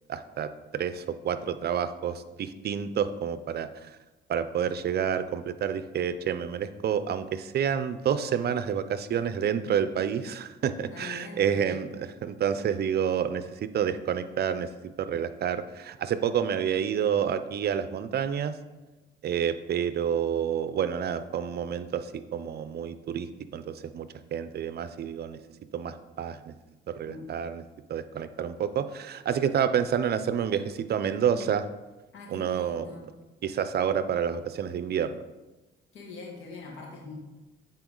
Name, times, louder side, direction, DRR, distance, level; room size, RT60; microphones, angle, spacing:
voice 1, 0.1-3.9 4.3-14.7 15.0-18.6 19.2-25.4 25.7-26.5 26.9-27.6 27.9-31.7 32.3-32.9 33.4-35.2, right 8 dB, 55° right, 12 dB, 0.5 m, -29 dB
voice 2, 10.7-11.8 27.1-27.2 32.1-33.1 35.9-37.2, left 3 dB, 90° left, -1 dB, 1.8 m, -43 dB
9.1 x 4.4 x 3.8 m, 1.1 s
cardioid pair, 90°, 20 cm